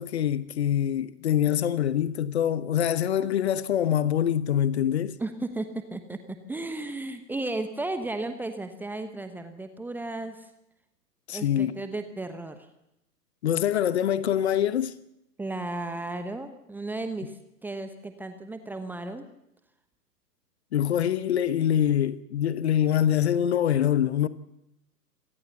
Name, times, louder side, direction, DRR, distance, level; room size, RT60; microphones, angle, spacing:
voice 1, 0.0-5.2 11.3-11.9 13.4-15.0 20.7-24.3, left 10 dB, 40° left, 1.1 m, -24 dB
voice 2, 5.2-10.5 11.3-12.7 15.4-19.3, right 2 dB, 5° right, 1.0 m, -34 dB
26.0 x 19.0 x 6.9 m
figure-of-eight pair, 120°, 49 cm